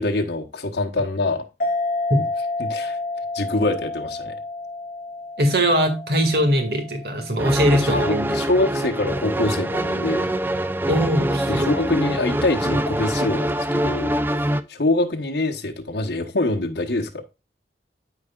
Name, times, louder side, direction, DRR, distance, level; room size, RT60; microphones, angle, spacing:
voice 1, 0.0-1.4 2.6-3.0 3.3-4.4 7.7-10.3 11.5-14.2 14.7-17.2, left 2 dB, 75° left, 1.2 m, -24 dB
sound 1, 1.6-8.6, left 2 dB, 50° left, 1.1 m, -30 dB
voice 2, 5.4-8.4 10.9-11.7, equal, 60° right, 2.2 m, -21 dB
sound 2, 7.4-14.6, right 1 dB, 10° right, 0.4 m, -24 dB
12.5 x 4.8 x 2.4 m
head